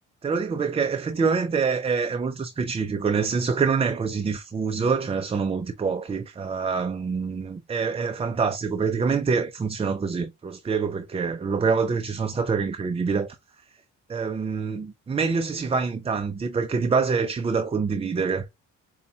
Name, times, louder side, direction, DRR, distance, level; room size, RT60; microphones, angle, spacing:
voice 1, 0.2-13.4 14.1-18.5, right 5 dB, 20° right, 0.4 m, -26 dB
5.2 x 2.3 x 2.6 m
cardioid pair, 90°, 30 cm